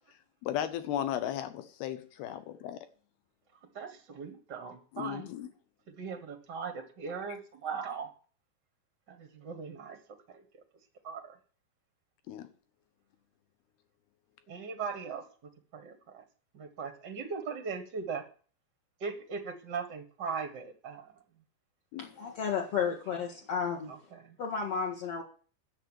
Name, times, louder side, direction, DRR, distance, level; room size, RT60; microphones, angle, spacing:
voice 1, 0.4-2.8 4.9-5.5 12.3-12.5 21.9-22.1, left 11 dB, 70° left, 2.8 m, -35 dB
voice 2, 3.7-5.2 6.0-8.1 9.1-10.0 10.3-10.4 11.0-11.2 14.5-15.2 15.7-16.2 16.5-18.2 19.0-21.0, right 5 dB, 60° right, 1.1 m, -39 dB
voice 3, 22.0-24.0 24.4-25.2, left 6 dB, 55° left, 1.8 m, -32 dB
10.5 x 7.2 x 9.1 m
omnidirectional pair, 5.0 m